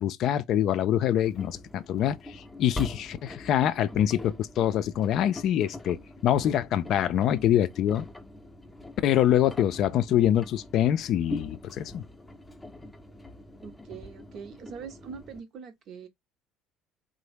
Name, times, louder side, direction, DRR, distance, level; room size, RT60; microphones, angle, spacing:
voice 1, 0.0-8.1 9.0-12.0, left 11 dB, 55° left, 0.3 m, -25 dB
Engine, 1.2-15.4, left 2 dB, 15° left, 0.6 m, -43 dB
voice 2, 13.6-16.1, right 6 dB, 55° right, 0.7 m, -43 dB
2.9 x 2.0 x 3.3 m
hypercardioid pair, 65°, 0 cm